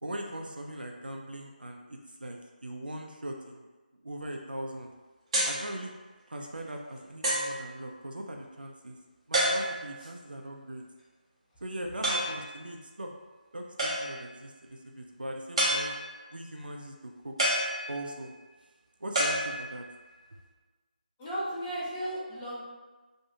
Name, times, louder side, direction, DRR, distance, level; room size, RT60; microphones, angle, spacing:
voice 1, 0.0-3.7 4.0-4.9 5.4-5.9 6.3-9.0 9.3-10.8 11.6-13.1 13.5-16.0 16.3-17.0 17.2-17.3 17.9-18.3 19.0-19.8, right 1 dB, 75° right, 2 dB, 0.4 m, -40 dB
sound 1, 5.3-5.7 6.4-6.5 7.2-7.6 9.3-10.0 12.0-12.4 13.8-14.3 15.6-16.3 17.4-18.3 19.1-20.0, right 1 dB, 35° right, 0.7 m, -29 dB
voice 2, 21.2-22.6, right 1 dB, 10° left, -9 dB, 0.5 m, -35 dB
2.6 x 2.3 x 2.7 m, 1.3 s
figure-of-eight pair, 155°, 5 cm